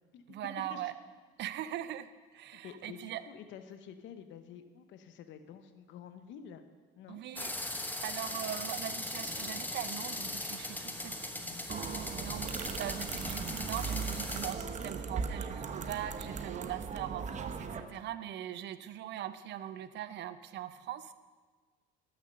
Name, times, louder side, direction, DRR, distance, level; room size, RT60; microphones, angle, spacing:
voice 1, 0.3-1.0 1.4-3.2 7.1-7.5 8.0-21.1, right 12 dB, 55° right, 13 dB, 0.7 m, -41 dB
voice 2, 2.5-6.6 7.0-7.2, left 8 dB, 65° left, 9 dB, 1.0 m, -49 dB
sound 1, 7.4-14.5, left 1 dB, 10° left, 1.1 m, -39 dB
sound 2, 11.7-17.8, right 5 dB, 35° right, 0.9 m, -38 dB
12.0 x 6.6 x 6.6 m, 1.5 s
supercardioid pair, 100°, 21 cm